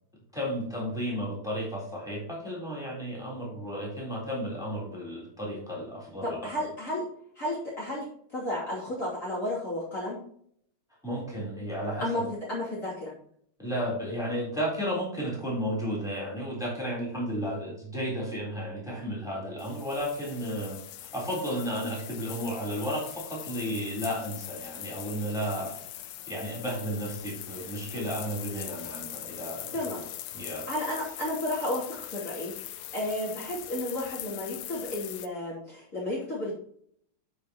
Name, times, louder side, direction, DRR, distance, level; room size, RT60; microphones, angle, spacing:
voice 1, 0.3-6.4 11.0-12.2 13.6-20.8 21.1-25.7 26.3-29.8 30.3-30.6, equal, ahead, -4 dB, 3.6 m, -33 dB
voice 2, 6.4-7.0 7.3-8.0 8.3-10.2 12.0-13.1 29.7-30.0 30.7-36.5, left 1 dB, 35° left, -7 dB, 3.1 m, -32 dB
sound 1, 19.6-35.3, left 12 dB, 85° left, 1.6 m, -42 dB
12.0 x 5.2 x 2.9 m, 0.65 s
omnidirectional pair, 2.4 m